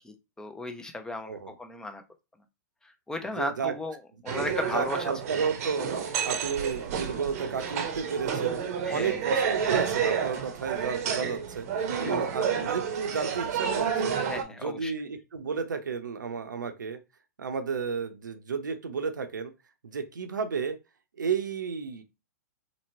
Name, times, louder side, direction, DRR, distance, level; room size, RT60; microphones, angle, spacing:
voice 1, 0.0-2.0 3.1-4.0 4.2-5.0 8.8-9.2 12.0-12.3 14.3-14.9, left 1 dB, 5° left, 6 dB, 0.5 m, -35 dB
voice 2, 1.2-1.6 3.2-3.7 4.3-5.9 6.2-8.6 8.9-11.7 12.0-14.2 14.5-17.0 17.4-19.5 19.8-20.8 21.2-22.0, right 6 dB, 90° right, 8 dB, 0.6 m, -32 dB
Arabic Small Busy Restaurant Amb Tel Aviv Israel, 4.3-14.4, right 7 dB, 50° right, 0.7 m, -30 dB
3.0 x 2.9 x 2.6 m, 0.27 s
hypercardioid pair, 125°, 10 cm